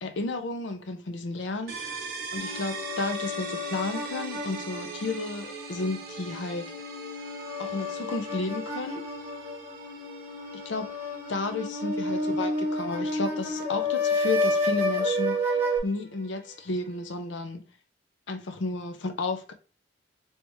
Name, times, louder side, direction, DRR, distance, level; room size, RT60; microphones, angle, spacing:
voice 1, 0.0-2.0 2.3-6.7 7.6-9.1 10.5-10.9 11.3-17.6 18.3-19.5, left 3 dB, 75° left, 0.5 m, -32 dB
sound 1, 1.7-17.2, right 4 dB, 55° right, 0.9 m, -42 dB
sound 2, 2.4-15.8, left 1 dB, 10° right, 0.8 m, -31 dB
3.4 x 2.8 x 3.0 m
head